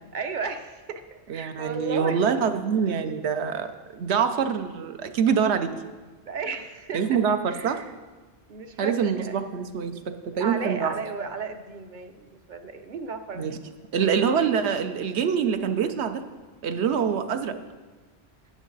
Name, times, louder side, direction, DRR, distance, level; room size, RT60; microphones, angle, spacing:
voice 1, 0.1-2.3 6.3-7.2 7.5-7.9 8.5-9.4 10.4-13.5, right 4 dB, 50° right, 8 dB, 0.8 m, -34 dB
voice 2, 1.3-5.7 6.9-7.8 8.8-11.0 13.4-13.6 13.9-16.2 16.6-17.6, right 7 dB, 80° right, 8 dB, 1.0 m, -25 dB
16.0 x 6.3 x 4.0 m, 1.3 s
omnidirectional pair, 1.1 m